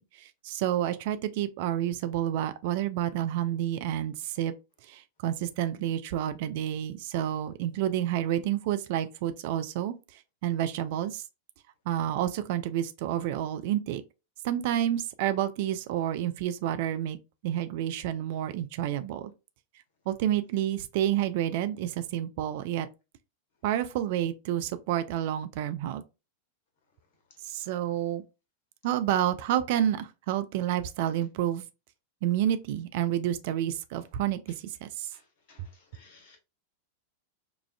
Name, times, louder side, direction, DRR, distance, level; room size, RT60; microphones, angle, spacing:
voice 1, 0.0-4.5 4.9-11.2 11.9-14.0 14.4-17.2 17.4-19.3 20.1-22.9 23.6-26.0 27.4-28.2 28.8-31.6 32.2-35.1, right 11 dB, 50° right, 0.3 m, -29 dB
voice 2, 35.9-36.4, left 4 dB, 50° left, 1.3 m, -56 dB
4.9 x 2.3 x 2.3 m
figure-of-eight pair, 90°, 0 cm